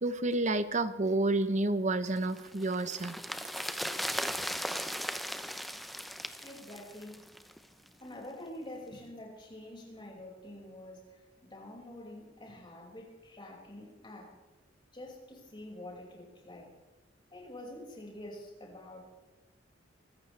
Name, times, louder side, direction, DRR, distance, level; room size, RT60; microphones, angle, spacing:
voice 1, 0.0-3.2, right 2 dB, 40° right, 11 dB, 0.9 m, -29 dB
sound 1, 2.2-7.6 7.9-8.0, equal, ahead, 0.7 m, -37 dB
voice 2, 6.4-7.3 8.0-14.4 14.9-16.7 17.3-19.1, left 1 dB, 25° left, -2 dB, 5.6 m, -47 dB
25.0 x 15.0 x 3.4 m, 1.1 s
head